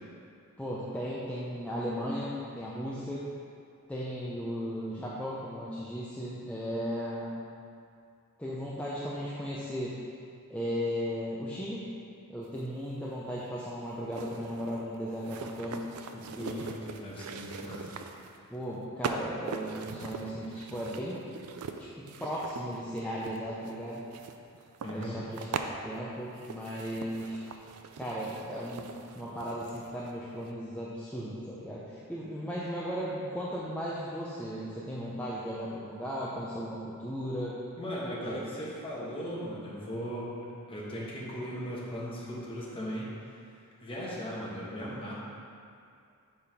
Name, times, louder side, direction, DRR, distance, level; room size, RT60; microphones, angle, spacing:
voice 1, 0.6-3.2 3.9-7.4 8.4-10.0 10.5-11.9 12.3-16.6 18.5-21.2 21.8-24.0 24.9-27.5 28.0-37.6 38.1-38.4, equal, 5° left, -7 dB, 0.5 m, -36 dB
sound 1, 12.6-12.7 14.1-18.4 19.0-25.7 26.3-30.1 30.4-30.5, right 5 dB, 90° right, 0.4 m, -41 dB
voice 2, 16.3-17.9 24.8-25.2 37.8-40.3 40.7-43.1 43.8-45.1, equal, 25° left, -6 dB, 1.2 m, -38 dB
5.3 x 4.5 x 5.1 m, 2.4 s
head